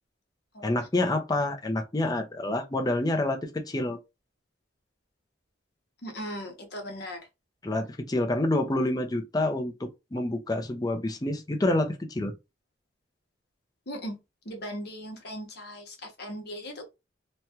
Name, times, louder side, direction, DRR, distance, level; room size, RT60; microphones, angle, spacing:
voice 1, 0.6-4.0 7.6-12.3, left 1 dB, 20° left, 0.5 m, -28 dB
voice 2, 6.0-7.2 13.9-14.1 14.5-16.9, equal, 55° left, 1.0 m, -38 dB
3.1 x 2.3 x 2.8 m
head